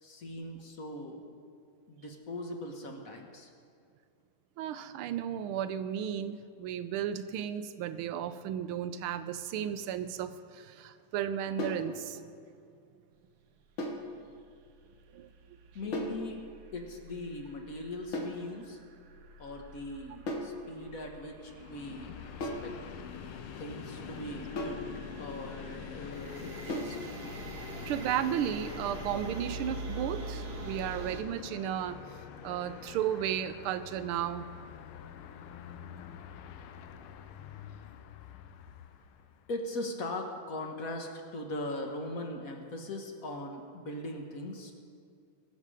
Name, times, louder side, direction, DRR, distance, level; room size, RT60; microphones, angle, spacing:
voice 1, 0.0-1.3 1.9-3.5 15.7-16.4 16.7-18.8 19.4-22.1 22.4-22.7 23.6-24.9 25.2-27.0 39.5-44.7, left 1 dB, 45° left, 3 dB, 1.4 m, -40 dB
voice 2, 4.6-12.2 15.1-15.3 27.9-32.0 32.4-34.5, right 9 dB, 85° right, 12 dB, 1.5 m, -34 dB
sound 1, 11.6-11.9 13.8-14.1 15.9-16.2 18.1-18.4 20.3-20.6 22.4-22.7 24.6-24.9 26.7-27.0, left 1 dB, 65° left, 2.2 m, -35 dB
sound 2, 13.6-31.2, right 3 dB, 60° right, 1.2 m, -46 dB
Train, 21.4-39.5, left 8 dB, 85° left, 1.6 m, -46 dB
21.5 x 7.5 x 4.9 m, 2.4 s
omnidirectional pair, 2.3 m